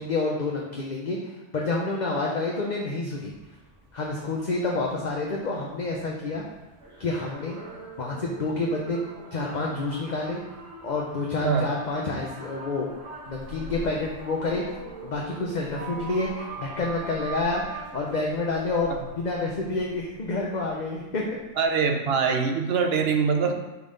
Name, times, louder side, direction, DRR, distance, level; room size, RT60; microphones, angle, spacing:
voice 1, 0.0-3.3 3.9-6.4 7.0-7.6 8.0-9.0 9.3-10.4 10.8-12.9 13.3-14.6 15.0-21.4, left 3 dB, 40° left, -2 dB, 0.9 m, -28 dB
sound 1, 3.1-21.6, right 3 dB, 85° right, 2.5 m, -43 dB
voice 2, 21.6-23.5, right 5 dB, 60° right, 5 dB, 1.0 m, -23 dB
6.8 x 4.4 x 5.1 m, 1.1 s
omnidirectional pair, 1.2 m